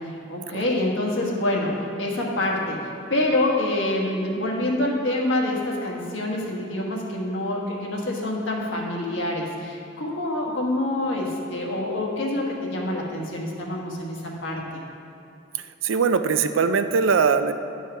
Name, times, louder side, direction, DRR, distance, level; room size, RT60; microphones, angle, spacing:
voice 1, 0.0-2.8 3.1-14.8, left 1 dB, 70° left, -2 dB, 1.5 m, -26 dB
voice 2, 15.8-17.5, right 5 dB, 85° right, 10 dB, 0.4 m, -20 dB
10.5 x 4.7 x 5.6 m, 2.5 s
head